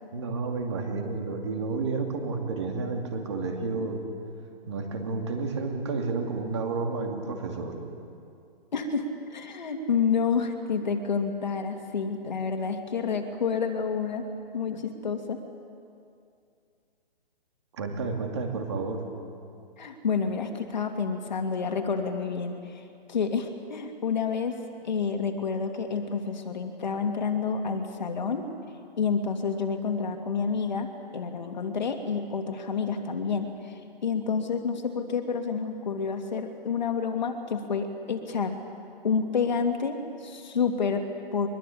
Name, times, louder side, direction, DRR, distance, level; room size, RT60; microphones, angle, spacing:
voice 1, 0.1-4.0 4.7-7.8 17.7-19.0, right 4 dB, 30° right, 2 dB, 2.6 m, -31 dB
voice 2, 8.7-14.3 14.5-15.4 19.8-24.6 24.8-28.4 29.0-38.6 39.0-41.5, left 5 dB, 45° left, 5 dB, 2.5 m, -29 dB
23.5 x 22.0 x 8.6 m, 2.5 s
hypercardioid pair, 180°, 30 cm